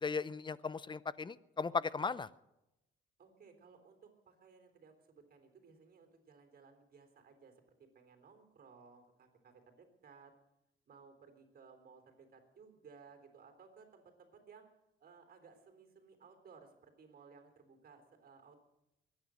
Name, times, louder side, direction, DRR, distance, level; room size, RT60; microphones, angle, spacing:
voice 1, 0.0-2.3, left 4 dB, 25° left, 18 dB, 0.6 m, -37 dB
voice 2, 3.2-10.3 10.9-14.7 15.0-18.6, right 5 dB, 50° right, 6 dB, 3.7 m, -60 dB
22.0 x 9.6 x 6.4 m, 0.91 s
cardioid pair, 90°, 20 cm